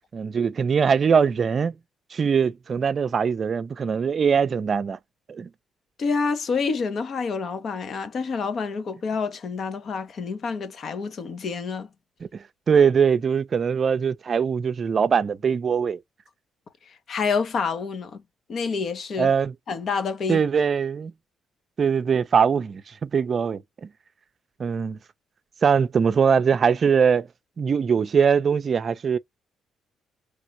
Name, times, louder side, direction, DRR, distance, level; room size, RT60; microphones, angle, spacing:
voice 1, 0.1-1.7 2.1-5.0 5.3-5.5 12.2-16.0 19.2-19.5 20.3-21.1 21.8-23.9 24.6-25.0 25.6-27.3 27.6-29.2, right 6 dB, 45° right, 0.5 m, -22 dB
voice 2, 6.0-11.9 16.8-18.2 18.5-19.3 19.7-20.4, left 5 dB, 55° left, 0.8 m, -28 dB
3.2 x 2.5 x 2.9 m
cardioid pair, 90°, 0 cm